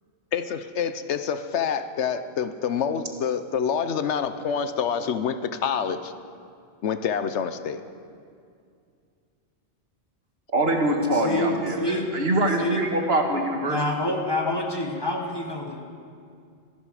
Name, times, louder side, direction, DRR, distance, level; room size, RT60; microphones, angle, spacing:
voice 1, 0.3-6.1 6.8-7.8, left 7 dB, 75° left, 11 dB, 1.0 m, -27 dB
voice 2, 10.5-13.8, right 1 dB, 60° right, 3 dB, 1.8 m, -24 dB
voice 3, 11.1-12.1 12.6-12.8 13.7-15.8, left 1 dB, 20° left, 1 dB, 1.5 m, -27 dB
26.0 x 11.0 x 4.9 m, 2.3 s
omnidirectional pair, 1.2 m